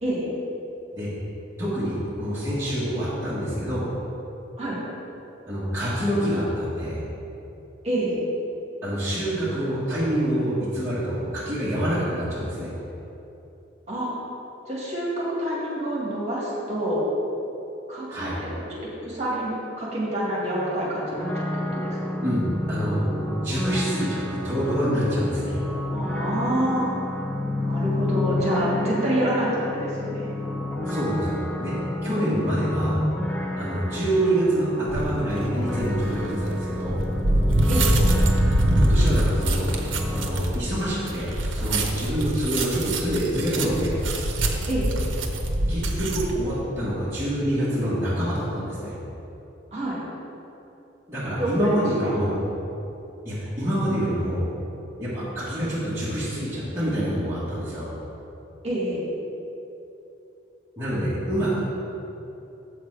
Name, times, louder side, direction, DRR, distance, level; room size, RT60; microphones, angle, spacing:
voice 1, 1.6-3.8 5.5-7.0 8.8-12.7 18.1-18.4 22.2-22.4 22.7-23.0 23.4-25.6 30.9-31.7 32.0-33.0 33.6-37.0 38.7-39.7 40.1-44.0 45.7-48.9 51.1-52.4 53.2-54.4 55.0-57.9 60.8-61.6, equal, 15° right, -12 dB, 1.6 m, -26 dB
voice 2, 7.8-8.2 13.9-14.1 14.7-17.1 17.9-19.5 19.8-22.0 25.9-26.9 27.6-30.3 37.7-37.9 44.7-44.9 49.7-50.0 51.4-51.5 52.0-52.2 58.6-59.0, right 1 dB, 35° right, -6 dB, 2.0 m, -27 dB
sound 1, 21.1-40.3, left 1 dB, 5° left, 0.4 m, -29 dB
sound 2, 34.9-35.2 35.8-46.3, right 1 dB, 75° right, 0.8 m, -24 dB
7.8 x 6.6 x 4.8 m, 2.9 s
head